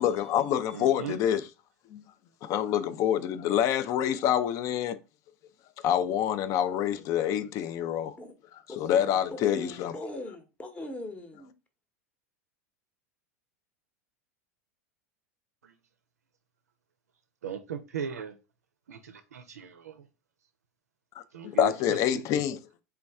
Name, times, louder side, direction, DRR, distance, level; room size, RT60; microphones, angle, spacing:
voice 1, 0.0-1.4 1.9-2.0 2.4-5.0 5.8-8.1 8.8-9.9 21.4-22.6, left 10 dB, 40° left, 0.4 m, -26 dB
voice 2, 0.7-1.2 15.6-15.7 17.4-18.4 18.9-20.1 21.3-22.2, right 7 dB, 75° right, 0.4 m, -38 dB
voice 3, 8.7-11.5 21.7-21.8, left 2 dB, 15° left, 0.9 m, -41 dB
3.4 x 3.0 x 3.4 m
figure-of-eight pair, 85°, 9 cm